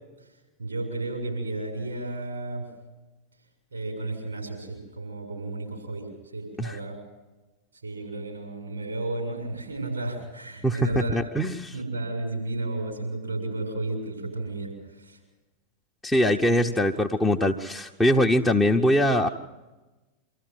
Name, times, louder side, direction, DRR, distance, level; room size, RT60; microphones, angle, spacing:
voice 1, 0.6-2.7 3.7-7.0 7.8-11.2 11.7-15.2, right 2 dB, 75° right, 2 dB, 6.9 m, -33 dB
voice 2, 10.6-11.8 16.0-19.3, equal, 5° left, -1 dB, 1.0 m, -22 dB
25.5 x 14.5 x 7.9 m, 1.2 s
figure-of-eight pair, 90°, 0 cm